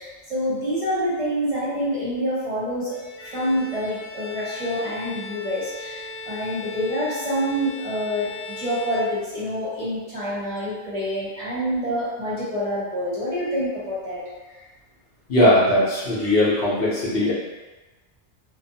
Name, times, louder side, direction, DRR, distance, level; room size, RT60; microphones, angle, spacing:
voice 1, 0.0-3.0 3.2-14.2 14.5-14.6, equal, 35° right, -9 dB, 0.7 m, -27 dB
Bowed string instrument, 2.9-9.7, left 1 dB, 30° left, 0.7 m, -38 dB
voice 2, 15.3-17.3, left 1 dB, 60° left, -7 dB, 0.9 m, -19 dB
2.6 x 2.1 x 2.7 m, 1.2 s
omnidirectional pair, 1.2 m